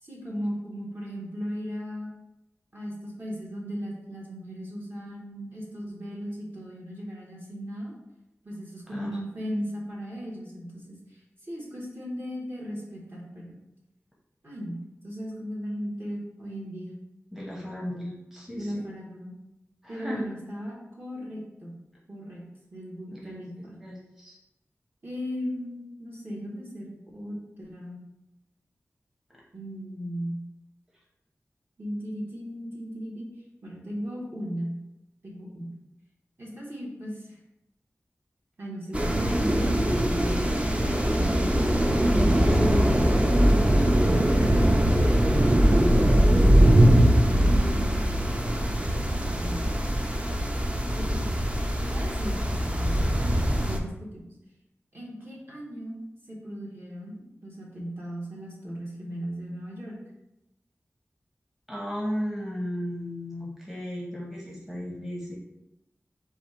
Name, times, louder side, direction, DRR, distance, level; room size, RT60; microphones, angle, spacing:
voice 1, 0.0-2.1 2.7-7.9 8.4-11.2 11.5-13.5 14.4-14.8 15.0-16.9 18.5-19.4 19.9-21.7 22.1-22.4 22.7-23.8 25.0-28.0 29.5-30.4 31.8-33.3 33.6-34.8 35.2-35.7 36.4-37.4 38.6-40.4 45.7-46.8 47.3-48.0 49.2-49.7 50.9-51.2 51.8-53.0 53.6-54.3 54.9-56.0 56.3-60.0, equal, 45° right, -5 dB, 1.5 m, -37 dB
voice 2, 17.3-18.9 19.8-20.2 23.1-24.4 29.3-29.4 41.1-44.2 61.7-65.4, equal, 5° right, -4 dB, 0.9 m, -36 dB
sound 1, 38.9-53.8, equal, 25° right, 0.5 m, -21 dB
4.2 x 2.4 x 4.5 m, 0.92 s
wide cardioid pair, 60°, 5 cm